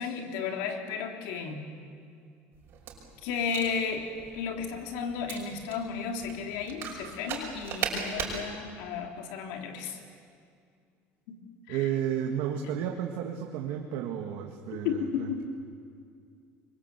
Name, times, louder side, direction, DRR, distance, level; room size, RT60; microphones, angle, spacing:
voice 1, 0.0-1.6 3.2-10.0 11.3-11.4 11.7-11.9 14.7-15.4, left 6 dB, 85° left, 3 dB, 3.2 m, -33 dB
sound 1, 2.5-8.4, right 6 dB, 45° right, 5.8 m, -38 dB
voice 2, 11.7-15.4, right 9 dB, 75° right, 2 dB, 1.9 m, -32 dB
27.5 x 23.5 x 8.2 m, 2.3 s
cardioid pair, 150°, 5 cm